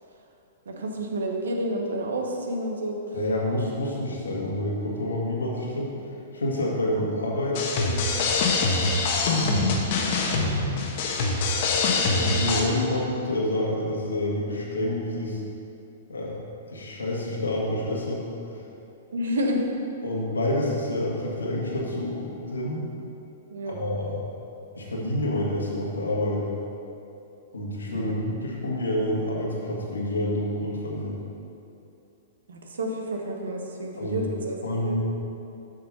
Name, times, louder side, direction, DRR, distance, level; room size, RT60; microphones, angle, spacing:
voice 1, 0.7-3.0 19.1-19.6 23.5-23.8 27.9-28.1 32.5-35.0, right 1 dB, 80° right, 1 dB, 1.2 m, -30 dB
voice 2, 3.1-5.9 6.3-8.0 9.2-9.8 10.9-11.4 12.1-15.4 16.1-16.4 16.7-18.2 18.5-18.6 20.0-22.8 23.6-24.2 24.7-26.5 27.5-31.1 34.0-34.2 34.6-35.0, left 1 dB, 85° left, -3 dB, 1.8 m, -28 dB
sound 1, 7.5-12.6, left 3 dB, 50° left, 1.1 m, -24 dB
7.9 x 5.5 x 5.4 m, 2.8 s
hypercardioid pair, 115°, 0 cm